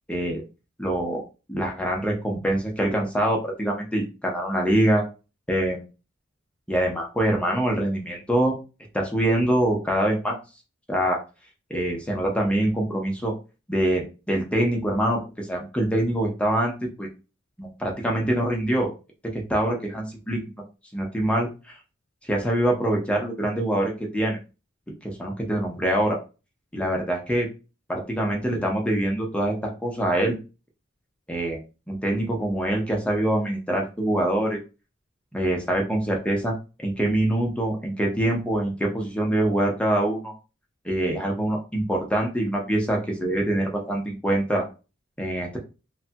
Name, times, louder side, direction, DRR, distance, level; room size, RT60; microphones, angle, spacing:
voice 1, 0.1-0.4 0.8-1.2 1.5-5.0 5.5-5.8 6.7-8.6 8.9-10.4 10.9-11.2 11.7-13.3 13.7-17.1 17.6-18.9 19.2-20.6 20.9-21.8 22.2-24.4 25.0-26.2 26.7-27.5 27.9-30.4 31.3-31.6 31.9-34.6 35.3-36.5 36.8-40.3 40.8-44.7 45.2-45.6, right 1 dB, 5° left, 0 dB, 0.6 m, -24 dB
3.1 x 2.2 x 2.7 m, 0.30 s
head